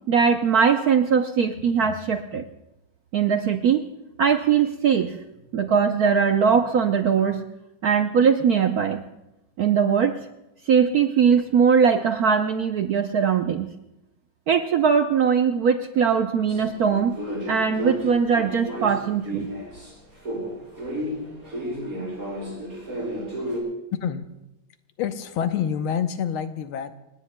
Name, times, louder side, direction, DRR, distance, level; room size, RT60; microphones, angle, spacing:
voice 1, 0.1-2.4 3.1-3.8 4.2-5.2 5.5-7.4 7.8-9.0 9.6-10.2 10.7-13.7 14.5-17.2 17.5-19.5, right 6 dB, 65° right, 6 dB, 0.9 m, -20 dB
sound 1, 16.5-19.9 20.2-23.6, equal, 40° right, 6.4 m, -32 dB
voice 2, 25.0-26.9, left 8 dB, 80° left, 9 dB, 1.7 m, -27 dB
29.0 x 17.5 x 2.2 m, 0.93 s
omnidirectional pair, 2.3 m